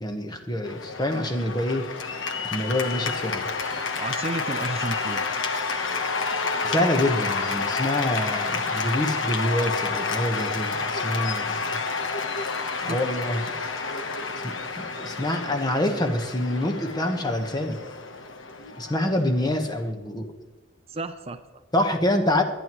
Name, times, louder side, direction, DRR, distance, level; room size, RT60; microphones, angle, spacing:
voice 1, 0.0-1.9 2.5-3.5 6.6-11.8 12.8-13.4 14.4-17.8 18.8-20.3 21.7-22.4, left 1 dB, 20° left, 5 dB, 1.2 m, -26 dB
Cheering / Applause, 0.6-19.9, left 4 dB, 75° left, 1.1 m, -29 dB
voice 2, 3.9-5.3 12.9-13.0 20.9-21.6, right 2 dB, 30° right, 9 dB, 0.5 m, -32 dB
23.0 x 9.2 x 3.1 m, 1.2 s
head